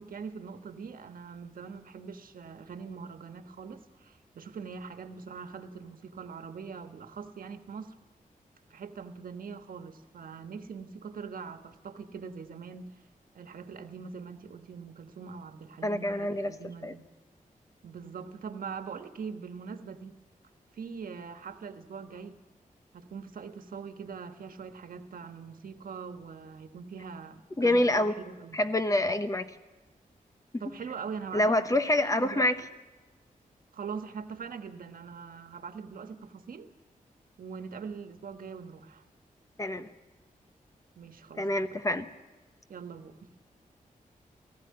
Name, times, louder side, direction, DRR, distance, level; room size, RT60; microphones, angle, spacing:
voice 1, 0.0-7.9 8.7-12.9 13.3-17.1 17.8-20.1 20.7-22.4 22.9-28.6 30.6-31.6 32.0-32.5 33.7-36.7 37.4-39.0 40.9-41.8 42.7-43.4, right 6 dB, 80° right, 8 dB, 1.3 m, -42 dB
voice 2, 15.8-16.5 16.8-16.9 27.6-28.1 28.5-29.5 30.5-30.6 31.3-32.6 39.6-39.9 41.4-42.1, left 1 dB, 25° left, 9 dB, 0.9 m, -26 dB
19.0 x 15.0 x 9.6 m, 1.2 s
wide cardioid pair, 130°, 14 cm